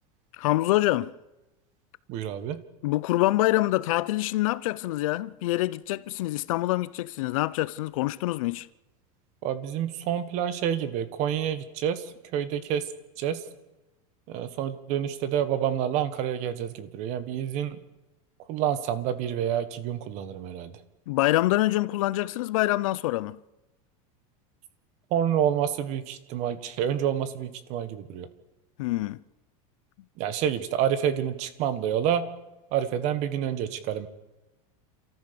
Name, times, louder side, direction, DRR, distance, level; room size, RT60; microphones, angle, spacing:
voice 1, 0.4-1.1 2.8-8.7 21.1-23.4 28.8-29.2, left 17 dB, 70° left, 0.7 m, -25 dB
voice 2, 2.1-2.6 9.4-12.0 12.3-12.8 13.2-13.4 14.3-17.8 18.5-20.7 25.1-28.3 30.2-32.2 32.7-34.1, right 9 dB, 40° right, 1.5 m, -28 dB
29.0 x 14.0 x 7.0 m
supercardioid pair, 170°, 18 cm